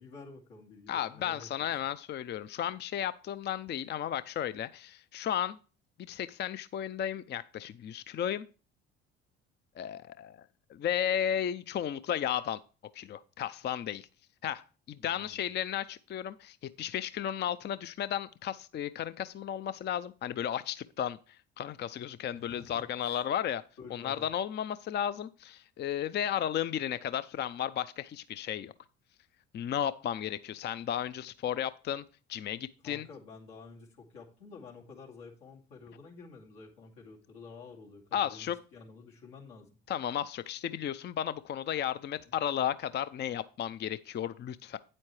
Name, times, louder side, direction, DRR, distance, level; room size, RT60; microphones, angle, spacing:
voice 1, 0.0-1.7 15.0-15.4 22.3-23.1 23.8-24.3 32.8-39.7 42.2-42.3, left 4 dB, 80° left, 2.5 m, -50 dB
voice 2, 0.9-5.6 6.0-8.5 9.8-10.4 10.7-12.6 12.9-14.1 14.4-21.2 21.6-23.6 23.9-28.7 29.5-32.0 32.3-33.1 38.1-38.6 39.9-44.8, left 10 dB, 35° left, 0.5 m, -34 dB
8.7 x 8.4 x 3.2 m
hypercardioid pair, 60°, 31 cm